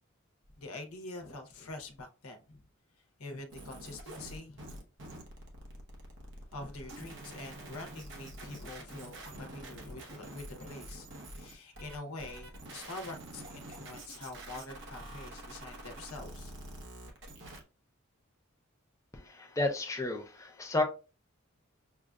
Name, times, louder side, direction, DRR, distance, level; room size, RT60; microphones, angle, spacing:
voice 1, 0.6-2.6 3.2-4.7 6.5-16.5, left 2 dB, 85° left, 0.9 m, -45 dB
sound 1, 3.5-17.6, right 1 dB, 55° right, 1.0 m, -47 dB
voice 2, 19.1-20.8, left 2 dB, 15° left, 0.6 m, -32 dB
6.3 x 2.5 x 2.3 m
head